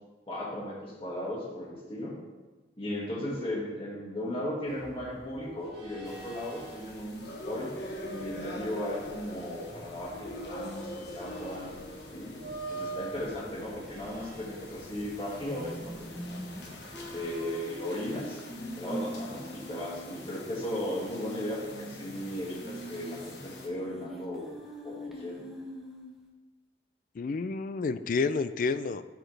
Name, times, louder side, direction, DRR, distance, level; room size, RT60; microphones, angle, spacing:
voice 1, 0.3-2.2 2.8-7.7 8.0-11.7 12.1-16.4 17.1-18.4 18.8-24.5 24.8-25.5, left 1 dB, 30° left, -5 dB, 2.1 m, -36 dB
sound 1, 4.7-17.5, right 3 dB, 70° right, 2.2 m, -46 dB
sound 2, 6.0-23.7, left 1 dB, 70° left, 1.2 m, -45 dB
sound 3, 15.4-20.3 20.6-20.7 20.9-21.0 21.6-22.2 22.5-26.1, equal, ahead, 0.9 m, -43 dB
voice 2, 27.2-29.0, left 4 dB, 45° left, 13 dB, 0.3 m, -29 dB
13.0 x 4.8 x 3.3 m, 1.2 s
head